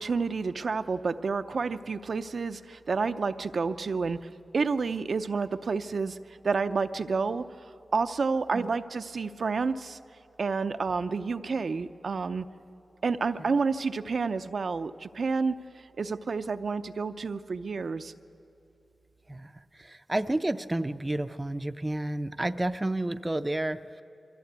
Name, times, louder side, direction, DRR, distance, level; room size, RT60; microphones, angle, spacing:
voice 1, 0.0-6.2 6.4-7.5 7.9-10.0 10.4-12.5 13.0-18.1, right 4 dB, 70° right, 10 dB, 0.6 m, -29 dB
voice 2, 19.8-24.0, right 1 dB, 20° right, 10 dB, 0.6 m, -30 dB
23.5 x 14.5 x 8.2 m, 2.7 s
wide cardioid pair, 75°, 0 cm